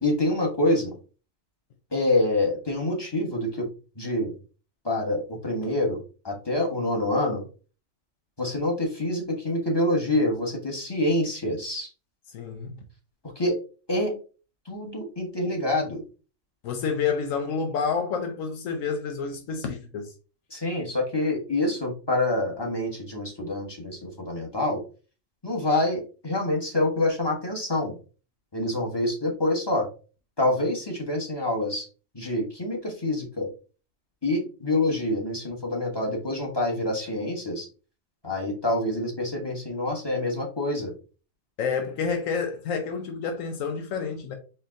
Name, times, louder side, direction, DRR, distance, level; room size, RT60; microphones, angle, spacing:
voice 1, 0.0-0.9 1.9-3.7 4.0-4.3 4.8-7.4 8.4-11.9 13.4-13.6 13.9-14.1 14.7-16.0 20.5-24.8 25.4-28.0 28.5-29.9 30.4-31.9 32.1-33.5 34.2-37.7 38.2-40.9, left 1 dB, 20° left, 1.2 m, -26 dB
voice 2, 12.3-12.8 16.6-20.1 41.6-44.3, left 5 dB, 85° left, 1.1 m, -29 dB
4.5 x 2.8 x 3.6 m
omnidirectional pair, 1.3 m